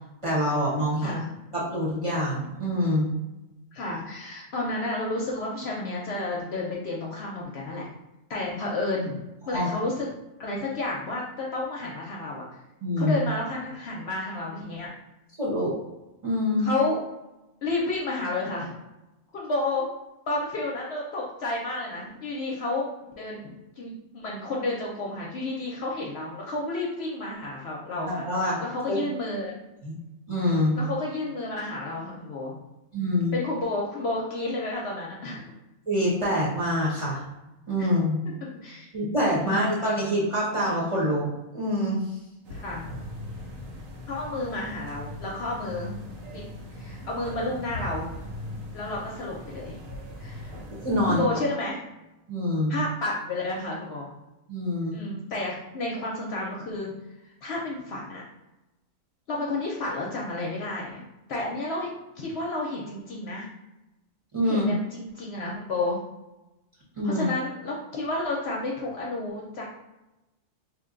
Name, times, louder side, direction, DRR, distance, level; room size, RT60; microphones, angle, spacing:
voice 1, 0.2-1.1 1.5-3.1 9.4-9.7 12.8-13.2 15.4-15.7 16.2-16.7 28.0-28.6 28.9-29.0 29.8-29.9 30.3-30.8 32.9-33.3 35.9-37.2 37.7-38.2 38.9-41.3 41.5-42.1 50.8-51.4 52.3-52.8 54.5-55.0 64.3-64.7 66.9-67.3, left 1 dB, 30° right, -8 dB, 0.8 m, -25 dB
voice 2, 3.7-7.9 8.3-9.2 9.5-10.1 10.4-12.4 13.0-14.9 16.6-17.0 17.6-18.7 19.3-19.8 20.3-23.5 23.8-28.2 28.6-29.5 30.8-32.5 33.3-35.5 37.8-37.9 38.6-38.9 39.4-39.7 42.5-42.8 44.1-45.9 46.3-46.4 46.7-48.1 48.7-49.8 50.2-50.5 51.0-51.8 52.7-54.1 54.9-56.9 57.4-58.2 59.3-61.0 61.3-61.9 62.2-63.5 64.5-66.0 67.0-69.6, left 2 dB, 60° left, -3 dB, 0.7 m, -31 dB
sound 1, 42.4-51.2, left 1 dB, 85° right, 1.2 m, -39 dB
2.8 x 2.2 x 3.7 m, 0.99 s
omnidirectional pair, 1.4 m